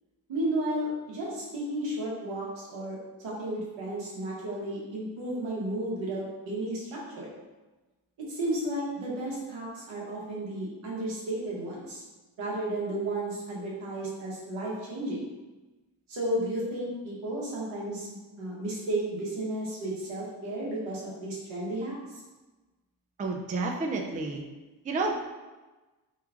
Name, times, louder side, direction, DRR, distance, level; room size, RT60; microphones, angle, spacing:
voice 1, 0.3-3.0 3.2-7.3 8.3-12.0 12.4-15.3 16.1-22.2, right 1 dB, 75° right, -5 dB, 1.2 m, -33 dB
voice 2, 23.2-24.4 24.8-25.2, right 3 dB, 20° right, 2 dB, 0.4 m, -30 dB
3.1 x 2.3 x 3.5 m, 1.2 s
supercardioid pair, 60°, 47 cm